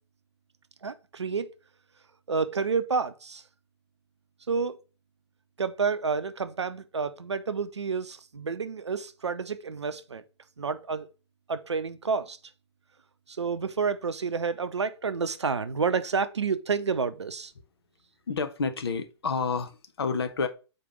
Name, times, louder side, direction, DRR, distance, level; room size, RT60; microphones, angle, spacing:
voice 1, 0.8-1.5 2.3-3.4 4.5-4.8 5.6-10.2 10.6-11.1 11.5-12.4 13.3-17.5, right 5 dB, 75° right, 0.6 m, -29 dB
voice 2, 18.3-20.5, left 5 dB, 60° left, 0.9 m, -29 dB
5.0 x 4.3 x 5.2 m
figure-of-eight pair, 120°, 15 cm